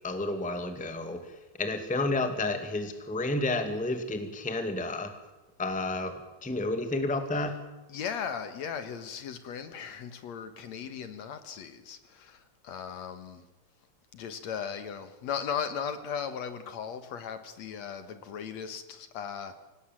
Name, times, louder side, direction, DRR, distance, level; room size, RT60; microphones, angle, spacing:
voice 1, 0.0-1.2 1.6-5.1 5.6-6.1 6.4-7.5, left 2 dB, 5° left, 8 dB, 1.5 m, -30 dB
voice 2, 7.9-13.5 14.1-19.6, left 7 dB, 65° left, 11 dB, 2.4 m, -37 dB
25.5 x 18.5 x 7.4 m, 1.1 s
omnidirectional pair, 3.5 m